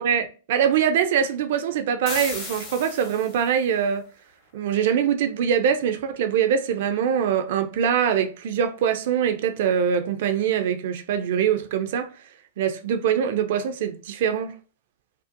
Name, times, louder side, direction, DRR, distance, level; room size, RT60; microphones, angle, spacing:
voice 1, 0.0-4.1 4.5-12.1 12.6-14.5, right 8 dB, 60° right, 0.3 m, -23 dB
sound 1, 2.1-3.6, left 4 dB, 35° left, 0.8 m, -35 dB
2.6 x 2.0 x 2.5 m
hypercardioid pair, 105°, 0 cm